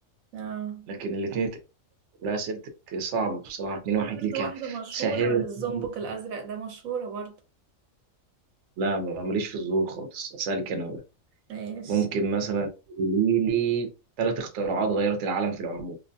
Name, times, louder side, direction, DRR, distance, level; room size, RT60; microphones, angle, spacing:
voice 1, 0.3-0.9 4.0-7.4 11.5-12.0, right 6 dB, 85° right, 1.1 m, -34 dB
voice 2, 0.9-1.6 2.2-2.6 2.9-5.4 5.7-5.9 8.8-11.0 11.9-12.7 13.0-13.9 14.2-16.0, right 5 dB, 65° right, 0.9 m, -27 dB
2.5 x 2.2 x 2.5 m
omnidirectional pair, 1.4 m